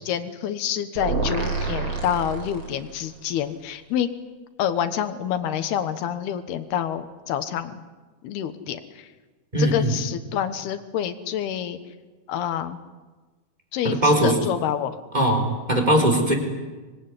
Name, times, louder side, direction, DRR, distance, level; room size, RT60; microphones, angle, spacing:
voice 1, 0.0-4.1 4.6-7.8 8.2-9.1 9.6-11.8 12.3-12.8 13.7-15.0, left 10 dB, 80° left, 10 dB, 3.2 m, -27 dB
sound 1, 1.0-3.1, right 4 dB, 30° right, 4.0 m, -28 dB
voice 2, 9.5-9.9 13.8-14.3 15.1-16.3, right 1 dB, 10° right, 2 dB, 3.8 m, -20 dB
25.0 x 21.0 x 9.8 m, 1.3 s
omnidirectional pair, 4.6 m